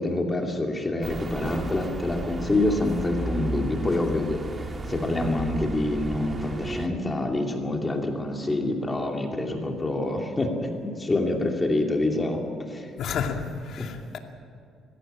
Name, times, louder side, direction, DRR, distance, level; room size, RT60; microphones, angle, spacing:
voice 1, 0.0-12.9 13.8-13.9, left 2 dB, 20° left, 2.6 m, -27 dB
sound 1, 1.0-6.9, right 2 dB, 25° right, 1.7 m, -34 dB
voice 2, 13.0-14.2, left 6 dB, 60° left, 2.4 m, -31 dB
22.0 x 16.0 x 8.9 m
cardioid pair, 120°, 0 cm